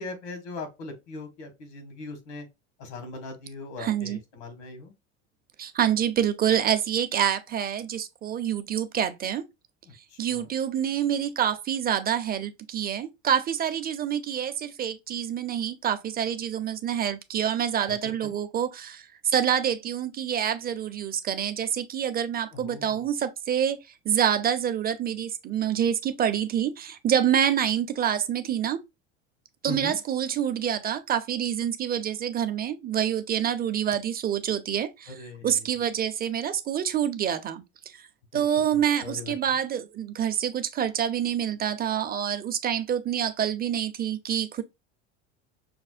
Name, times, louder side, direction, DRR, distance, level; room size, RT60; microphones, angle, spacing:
voice 1, 0.0-2.5 2.8-4.9 10.3-10.5 17.9-18.0 18.2-18.4 22.5-23.0 29.7-30.0 35.2-35.5 38.3-38.4 39.0-39.3, left 3 dB, 75° left, 1.6 m, -39 dB
voice 2, 3.8-4.2 5.6-9.4 10.2-23.8 24.0-28.8 29.6-37.6 37.9-38.1 38.3-44.6, right 9 dB, 25° right, 0.6 m, -27 dB
5.8 x 2.1 x 2.4 m
hypercardioid pair, 90°, 34 cm